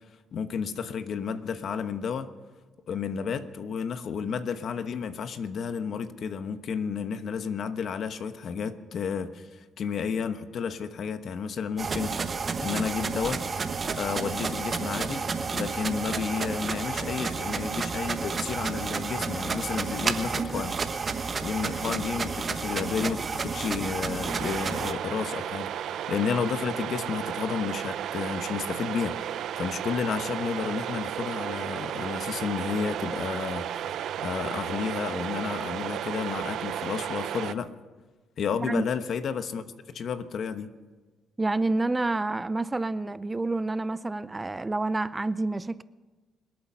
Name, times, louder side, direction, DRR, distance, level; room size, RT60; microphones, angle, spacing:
voice 1, 0.3-2.3 2.9-12.2 12.6-13.4 13.9-15.3 15.5-20.8 21.4-33.7 34.2-37.7 38.4-39.7 39.9-40.7, left 6 dB, 60° left, 10 dB, 1.1 m, -32 dB
sound 1, 11.8-24.9, right 5 dB, 40° right, 1.1 m, -31 dB
sound 2, 24.2-37.5, right 10 dB, 75° right, 0.5 m, -33 dB
voice 2, 41.4-45.8, right 2 dB, 20° right, 16 dB, 0.4 m, -28 dB
25.5 x 8.8 x 5.7 m, 1.3 s
cardioid pair, 90°, 0 cm